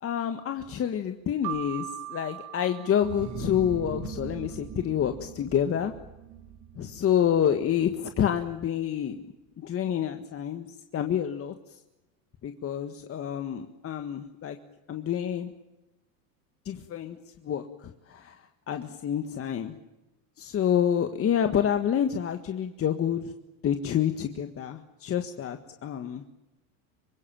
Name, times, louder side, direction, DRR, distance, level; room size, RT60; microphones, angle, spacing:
voice 1, 0.0-5.9 6.8-9.2 9.6-10.7 10.9-11.5 12.4-14.6 14.9-15.5 16.6-17.2 17.4-18.4 18.7-19.8 20.4-23.3 23.6-26.2, left 9 dB, 35° left, 7 dB, 1.7 m, -28 dB
Keyboard (musical), 1.4-4.0, right 14 dB, 65° right, 3.9 m, -40 dB
sound 1, 3.0-8.5, right 6 dB, 45° right, 4.0 m, -41 dB
25.0 x 21.0 x 9.0 m, 0.97 s
supercardioid pair, 115°, 41 cm